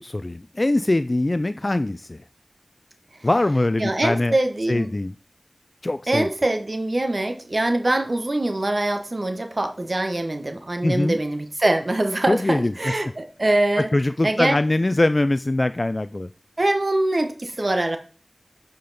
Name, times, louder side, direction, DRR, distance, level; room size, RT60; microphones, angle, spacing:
voice 1, 0.0-2.2 3.2-4.4 4.7-5.1 5.8-6.3 10.8-11.2 12.3-12.7 13.8-16.3, left 2 dB, 45° left, 12 dB, 0.3 m, -22 dB
voice 2, 3.8-4.9 6.1-13.9 14.2-14.6 16.6-18.0, right 1 dB, 50° right, 6 dB, 1.0 m, -23 dB
10.0 x 5.1 x 4.0 m, 0.39 s
wide cardioid pair, 55°, 0 cm